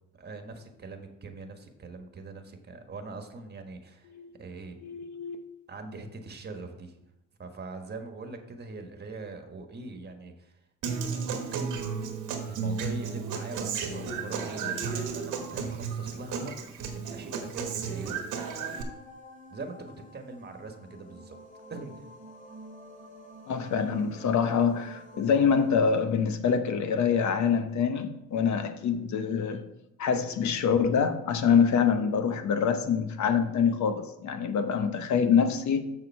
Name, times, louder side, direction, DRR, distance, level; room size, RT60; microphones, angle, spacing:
voice 1, 0.2-4.1 4.4-4.8 5.7-7.0 7.4-10.6 11.3-11.8 12.5-16.5 16.9-18.2 19.5-21.4 21.7-22.0, right 3 dB, 35° right, 1.4 m, -42 dB
voice 2, 4.8-5.4 23.5-29.6 30.0-35.8, left 6 dB, 70° left, 1.0 m, -25 dB
Human voice / Acoustic guitar, 10.8-18.8, right 6 dB, 90° right, 1.4 m, -33 dB
sound 1, 18.3-26.1, equal, 25° left, 2.2 m, -49 dB
6.7 x 6.6 x 4.7 m
cardioid pair, 90°, 30 cm